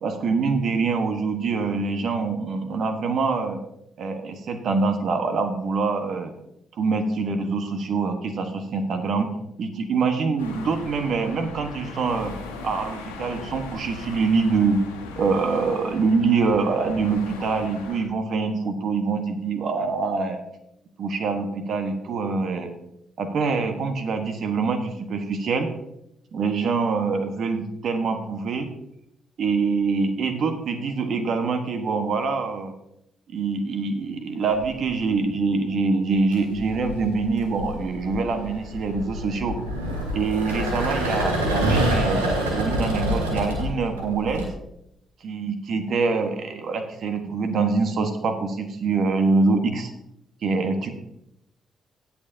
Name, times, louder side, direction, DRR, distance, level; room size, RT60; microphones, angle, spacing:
voice 1, 0.0-3.6 4.0-6.3 6.8-9.3 9.6-12.3 12.6-14.8 15.2-20.4 21.0-22.7 23.2-25.7 26.3-28.7 29.4-32.7 33.3-39.6 40.1-44.5 45.2-49.9 50.4-50.9, right 4 dB, 60° right, 7 dB, 1.3 m, -25 dB
sound 1, 10.4-18.0, left 3 dB, 85° left, 1.4 m, -39 dB
sound 2, 34.6-35.0 36.2-44.4, equal, 85° right, 1.4 m, -27 dB
17.0 x 7.1 x 2.7 m, 0.81 s
figure-of-eight pair, 40°, 0 cm